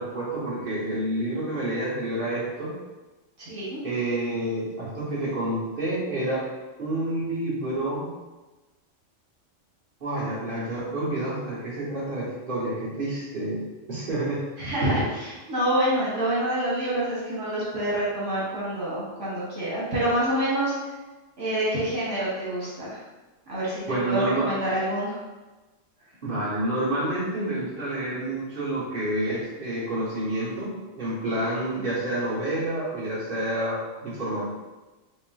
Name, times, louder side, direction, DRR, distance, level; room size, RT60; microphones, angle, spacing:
voice 1, 0.0-2.7 3.8-6.4 6.8-8.1 10.0-13.6 13.9-14.4 23.9-24.5 26.2-34.5, right 1 dB, 45° right, -8 dB, 1.4 m, -28 dB
voice 2, 3.4-3.8 14.6-20.7 21.4-23.0 23.5-25.2, right 1 dB, 75° right, -7 dB, 1.5 m, -27 dB
4.4 x 3.2 x 2.5 m, 1.2 s
omnidirectional pair, 1.3 m